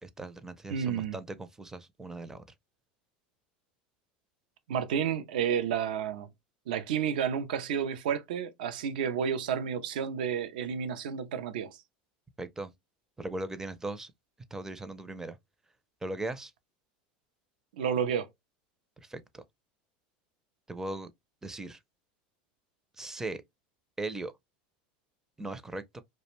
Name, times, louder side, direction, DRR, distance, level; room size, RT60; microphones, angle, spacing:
voice 1, 0.0-2.4 12.4-12.7 13.2-14.1 14.5-15.4 16.0-16.5 19.0-19.4 20.7-21.1 21.4-21.8 23.0-23.4 24.0-24.3 25.4-26.0, right 2 dB, 10° right, 0.4 m, -38 dB
voice 2, 0.7-1.2 4.7-6.3 6.7-11.8 17.7-18.3, right 8 dB, 80° right, 0.5 m, -31 dB
2.4 x 2.1 x 2.9 m
supercardioid pair, 100°, 5 cm